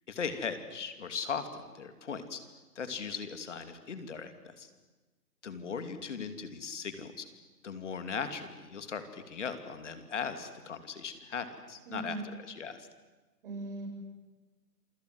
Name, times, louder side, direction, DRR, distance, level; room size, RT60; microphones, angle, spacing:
voice 1, 0.1-2.4 2.7-4.7 5.4-7.3 7.6-12.9, left 6 dB, 45° left, 9 dB, 2.9 m, -38 dB
voice 2, 11.9-12.4 13.4-13.9, right 2 dB, 35° right, 1 dB, 7.8 m, -39 dB
27.5 x 25.0 x 7.9 m, 1.2 s
hypercardioid pair, 160°, 48 cm